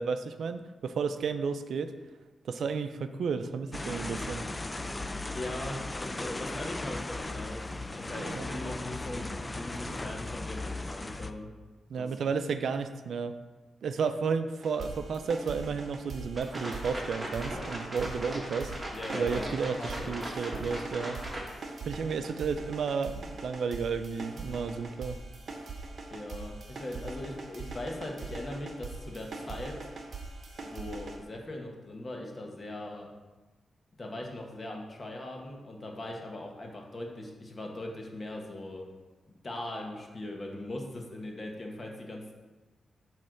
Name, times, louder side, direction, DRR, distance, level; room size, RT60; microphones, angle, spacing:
voice 1, 0.0-1.9 2.4-4.5 8.2-8.5 11.9-13.3 13.8-21.2 21.9-25.1, right 5 dB, 75° right, 9 dB, 0.4 m, -32 dB
sound 1, 3.7-11.3, left 2 dB, 20° left, 0.4 m, -37 dB
voice 2, 5.3-7.6 8.0-11.5 11.9-12.1 18.9-19.5 19.8-20.2 26.1-29.8 30.6-33.1 34.0-38.9 39.3-42.3, left 1 dB, 35° left, 1 dB, 1.4 m, -40 dB
sound 2, 14.6-31.2, right 3 dB, 55° right, 1.0 m, -42 dB
sound 3, 16.4-21.4, right 1 dB, 20° right, 1.7 m, -39 dB
8.6 x 3.2 x 6.4 m, 1.2 s
cardioid pair, 100°, 0 cm